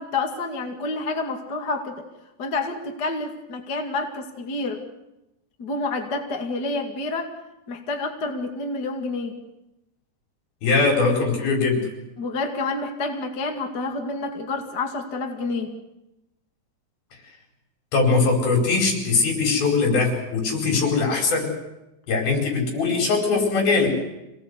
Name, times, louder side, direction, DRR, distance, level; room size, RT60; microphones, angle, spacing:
voice 1, 0.0-2.1 2.4-4.8 5.6-7.3 7.7-9.3 12.2-15.8, left 3 dB, 35° left, 3 dB, 2.0 m, -28 dB
voice 2, 10.6-11.9 17.9-21.5 22.1-23.9, left 4 dB, 65° left, 1 dB, 6.5 m, -21 dB
26.5 x 18.5 x 8.2 m, 0.95 s
omnidirectional pair, 4.7 m